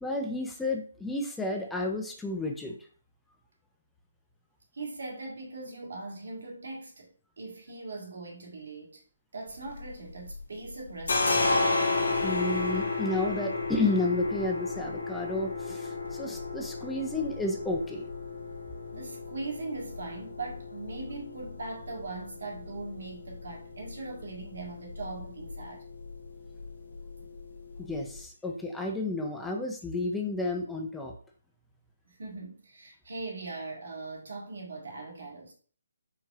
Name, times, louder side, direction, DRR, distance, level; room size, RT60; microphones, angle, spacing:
voice 1, 0.0-2.7 12.2-18.0 27.8-31.1, left 2 dB, 5° left, 0.3 m, -31 dB
voice 2, 4.7-7.1 7.4-9.0 9.3-11.5 18.9-25.8 27.2-27.3 32.0-35.5, right 3 dB, 65° right, 1.7 m, -40 dB
sound 1, 9.5-10.4 10.7-28.2, left 3 dB, 70° left, 1.3 m, -33 dB
4.7 x 2.7 x 3.5 m
hypercardioid pair, 175°, 0 cm